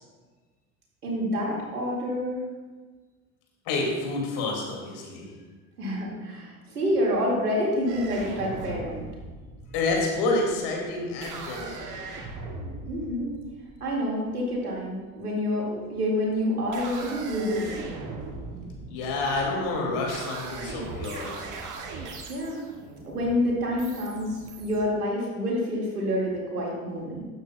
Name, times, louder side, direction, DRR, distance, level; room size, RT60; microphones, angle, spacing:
voice 1, 1.0-2.5 5.8-9.1 12.9-13.4 13.8-17.8 22.3-22.6 23.0-24.3 24.6-27.3, equal, 85° right, -3 dB, 2.2 m, -28 dB
voice 2, 3.7-5.3 9.7-12.1 18.9-21.4, left 2 dB, 60° left, -1 dB, 2.4 m, -28 dB
sound 1, 7.9-14.6 15.7-16.1 16.6-24.8, right 3 dB, 45° right, 1.8 m, -40 dB
12.5 x 9.1 x 2.3 m, 1.4 s
figure-of-eight pair, 65°, 44 cm